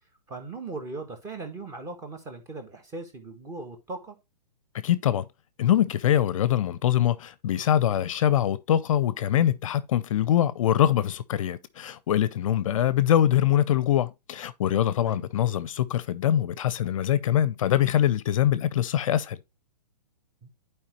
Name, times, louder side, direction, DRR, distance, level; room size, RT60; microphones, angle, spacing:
voice 1, 0.3-4.2 12.5-12.6 15.0-15.2 20.4-20.5, right 3 dB, 15° right, 1.5 m, -39 dB
voice 2, 4.8-5.3 5.6-19.4, left 11 dB, 50° left, 0.6 m, -23 dB
10.5 x 4.7 x 3.0 m
hypercardioid pair, 150°, 21 cm